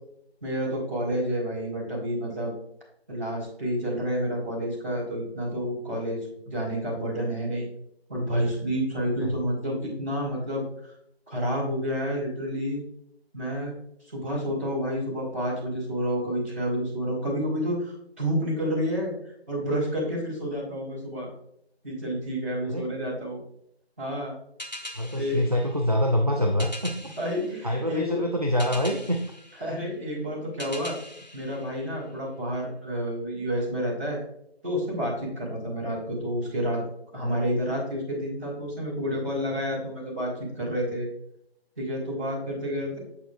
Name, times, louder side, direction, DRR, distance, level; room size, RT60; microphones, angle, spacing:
voice 1, 0.4-2.5 3.1-7.7 8.1-10.9 11.3-12.8 13.3-13.7 14.0-21.3 21.8-23.4 24.0-24.4 25.1-25.5 27.2-28.3 29.6-31.0 31.3-34.2 34.6-41.1 41.8-43.0, equal, 15° right, -11 dB, 2.5 m, -29 dB
sound 1, 24.6-32.5, left 1 dB, 45° left, 0.8 m, -43 dB
voice 2, 24.9-27.1 27.6-29.2, equal, 40° right, 2 dB, 0.4 m, -25 dB
7.8 x 6.8 x 2.5 m, 0.72 s
figure-of-eight pair, 170°, 32 cm